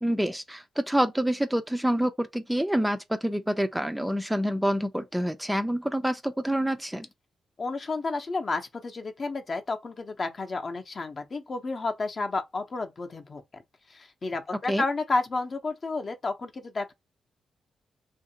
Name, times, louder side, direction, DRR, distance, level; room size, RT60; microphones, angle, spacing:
voice 1, 0.0-7.1 14.7-14.8, equal, 5° right, 0.4 m, -27 dB
voice 2, 7.6-13.6 13.9-16.9, left 3 dB, 40° left, 0.6 m, -31 dB
2.8 x 2.5 x 2.7 m
cardioid pair, 80°, 0 cm